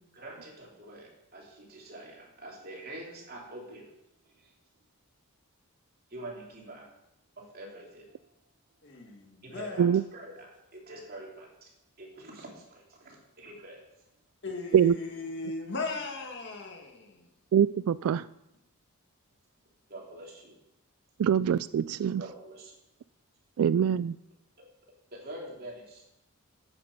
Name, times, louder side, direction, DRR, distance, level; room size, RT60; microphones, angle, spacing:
voice 1, 0.1-3.9 4.4-4.5 6.1-6.9 7.4-8.2 9.4-11.7 12.0-13.8 19.9-20.6 22.2-22.8 24.6-24.7 25.1-26.0, right 1 dB, 45° right, -2 dB, 3.0 m, -45 dB
voice 2, 8.8-9.9 14.4-17.3, left 3 dB, 50° left, 2 dB, 1.9 m, -37 dB
voice 3, 17.5-18.3 21.2-22.2 23.6-24.2, right 8 dB, 70° right, 17 dB, 0.3 m, -24 dB
9.1 x 9.0 x 6.8 m, 0.87 s
head